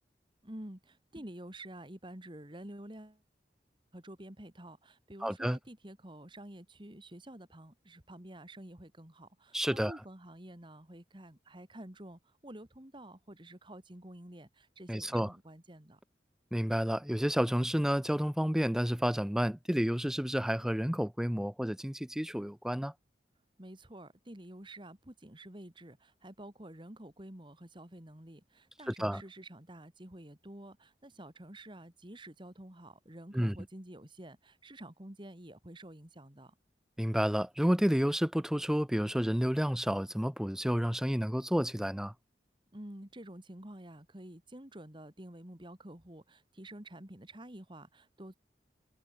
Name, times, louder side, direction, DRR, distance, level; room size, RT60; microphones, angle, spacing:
voice 1, 0.4-3.2 3.9-16.0 23.6-36.5 42.7-48.3, right 1 dB, 30° right, 2.4 m, -49 dB
voice 2, 5.2-5.6 9.5-9.9 14.9-15.3 16.5-22.9 28.9-29.2 33.3-33.6 37.0-42.1, equal, 5° right, 0.6 m, -30 dB
head